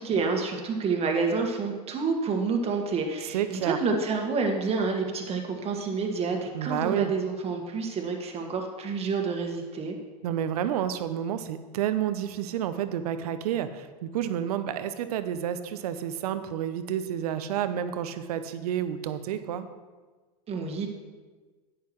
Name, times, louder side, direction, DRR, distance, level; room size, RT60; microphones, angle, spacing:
voice 1, 0.0-10.0 20.5-20.9, right 4 dB, 30° right, 3 dB, 1.7 m, -28 dB
voice 2, 3.3-3.8 6.5-7.1 10.2-19.6, right 10 dB, 70° right, 11 dB, 0.8 m, -30 dB
10.5 x 9.3 x 3.2 m, 1.3 s
hypercardioid pair, 95°, 20 cm